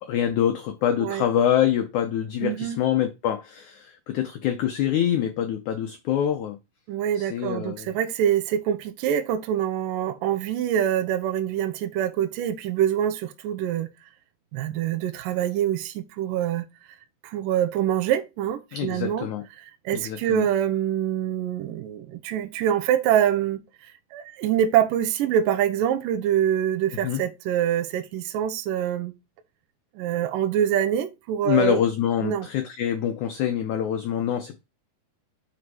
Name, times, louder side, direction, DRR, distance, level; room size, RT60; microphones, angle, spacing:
voice 1, 0.0-6.6 7.1-7.9 18.7-19.4 19.9-20.5 27.0-27.2 31.4-34.6, left 10 dB, 80° left, 1.7 m, -25 dB
voice 2, 2.4-2.8 6.9-13.9 14.5-16.6 17.2-19.3 19.9-23.6 24.1-29.1 30.0-31.8 32.2-32.5, right 10 dB, 75° right, 2.3 m, -25 dB
7.8 x 4.3 x 4.8 m
omnidirectional pair, 4.5 m